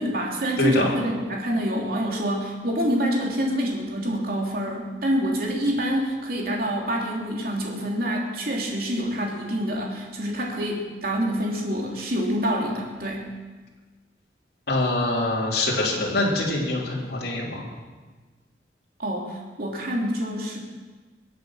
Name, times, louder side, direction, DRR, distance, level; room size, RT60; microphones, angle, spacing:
voice 1, 0.0-13.3 19.0-20.6, equal, 55° right, -1 dB, 3.1 m, -26 dB
voice 2, 0.6-0.9 14.7-17.6, left 2 dB, 65° left, -4 dB, 3.6 m, -24 dB
22.5 x 8.2 x 6.3 m, 1.3 s
head